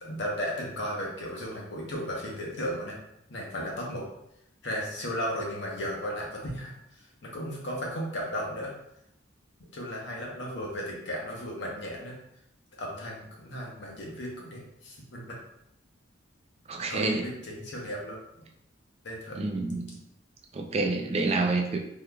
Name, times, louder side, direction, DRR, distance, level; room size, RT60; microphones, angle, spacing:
voice 1, 0.0-3.0 3.3-4.1 4.6-6.7 7.2-8.7 9.7-12.2 12.8-15.4 16.9-18.2 19.0-19.4, equal, 60° left, -2 dB, 0.8 m, -35 dB
voice 2, 16.7-17.2 19.3-20.0 20.5-21.8, right 3 dB, 30° right, 2 dB, 0.4 m, -28 dB
3.6 x 2.9 x 2.2 m, 0.76 s
head